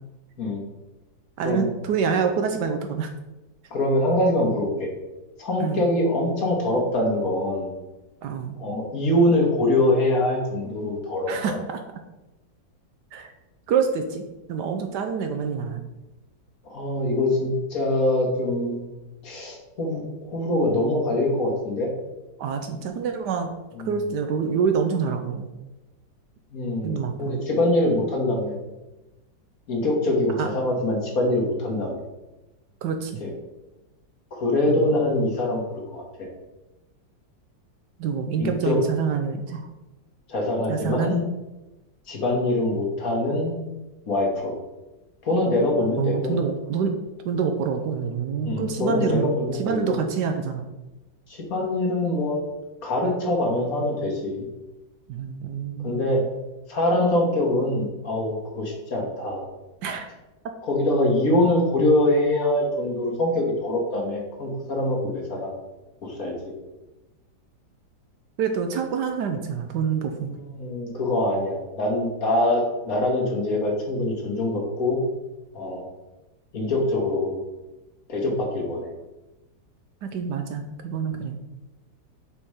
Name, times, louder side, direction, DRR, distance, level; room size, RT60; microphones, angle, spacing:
voice 1, 1.4-3.1 5.6-5.9 8.2-8.5 11.3-11.8 13.1-13.3 13.7-14.2 14.5-15.8 22.4-23.5 23.8-25.5 26.8-27.4 30.4-30.5 32.8-33.2 34.7-34.9 38.0-39.6 40.7-41.2 46.0-46.9 47.2-50.7 55.1-56.2 59.8-60.1 68.4-70.3 80.0-81.4, right 6 dB, 70° right, 5 dB, 1.1 m, -26 dB
voice 2, 3.7-4.9 5.4-7.7 8.6-11.6 16.7-18.8 19.2-21.9 26.5-28.6 29.7-32.0 33.2-33.3 34.3-36.0 38.4-38.8 40.3-41.2 42.1-43.6 44.1-44.5 45.2-46.3 48.4-50.0 51.3-52.4 52.8-54.4 55.8-56.2 56.7-59.5 60.7-65.5 66.0-66.5 70.5-75.0 75.5-75.8 76.5-77.3 78.1-78.9, left 1 dB, 50° left, -1 dB, 1.6 m, -24 dB
5.4 x 4.3 x 4.8 m, 1.0 s
omnidirectional pair, 2.0 m